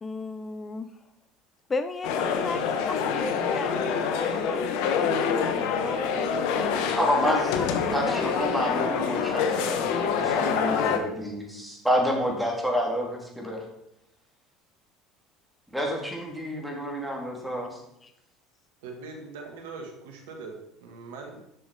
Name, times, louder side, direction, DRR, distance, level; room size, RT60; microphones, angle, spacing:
voice 1, 0.0-0.9 1.7-7.0 7.6-8.4 10.6-11.0 18.0-18.1, left 3 dB, 25° left, 9 dB, 0.6 m, -36 dB
sound 1, 2.0-11.0, left 6 dB, 70° left, 1.0 m, -26 dB
voice 2, 7.0-7.5 7.9-13.6 15.7-17.8, equal, 5° right, -1 dB, 2.9 m, -28 dB
voice 3, 18.8-21.4, right 4 dB, 80° right, 3 dB, 1.6 m, -41 dB
7.6 x 6.1 x 4.9 m, 0.80 s
hypercardioid pair, 75°, 0 cm